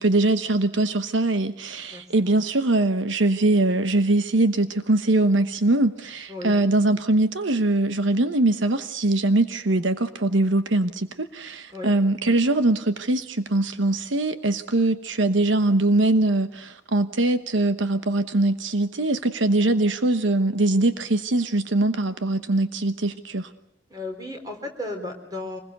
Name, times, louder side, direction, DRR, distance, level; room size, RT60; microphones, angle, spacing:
voice 1, 0.0-23.5, right 2 dB, 80° right, 1.1 m, -22 dB
voice 2, 23.9-25.6, left 2 dB, 20° right, 4.0 m, -34 dB
26.0 x 21.0 x 6.7 m
head